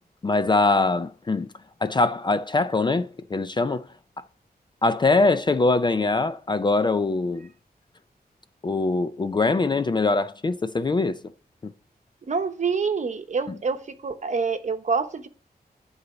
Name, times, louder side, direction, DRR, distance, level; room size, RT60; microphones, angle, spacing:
voice 1, 0.2-1.5 1.8-3.9 4.8-7.5 8.6-11.2, left 3 dB, 30° left, 0.4 m, -22 dB
voice 2, 12.3-15.3, right 5 dB, 45° right, 1.0 m, -26 dB
11.0 x 4.0 x 6.8 m
wide cardioid pair, 175°, 16 cm